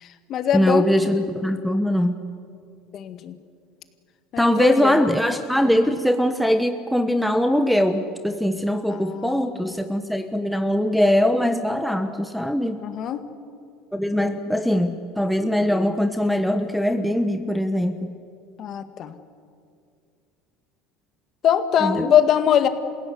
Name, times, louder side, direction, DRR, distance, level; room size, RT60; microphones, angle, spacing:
voice 1, 0.0-0.8 2.9-3.4 4.3-5.0 8.9-9.6 12.8-13.2 18.6-19.1 21.4-22.7, left 9 dB, 45° left, 9 dB, 2.0 m, -22 dB
voice 2, 0.5-2.2 4.4-12.8 13.9-18.1 21.8-22.1, equal, ahead, 7 dB, 1.2 m, -21 dB
28.0 x 16.5 x 9.6 m, 2.3 s
supercardioid pair, 120°, 0 cm